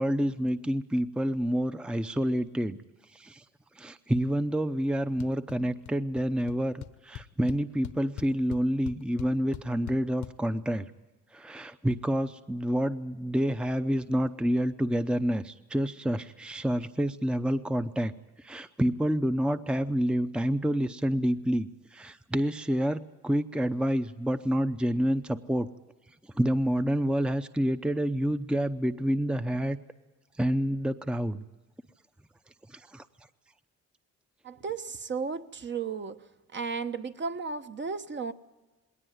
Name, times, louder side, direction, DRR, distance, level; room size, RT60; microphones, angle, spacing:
voice 1, 0.0-2.8 3.1-3.4 3.8-10.9 11.3-18.1 18.4-25.7 26.4-29.8 30.4-31.4 32.7-33.1, equal, 5° right, 10 dB, 0.7 m, -28 dB
sound 1, 5.2-5.6 5.8-6.2 6.5-6.6 6.8-10.3, left 12 dB, 70° left, 1.1 m, -41 dB
voice 2, 34.4-36.3 36.5-38.3, right 5 dB, 40° right, 8 dB, 1.1 m, -34 dB
20.0 x 18.0 x 9.3 m, 1.2 s
cardioid pair, 90°, 30 cm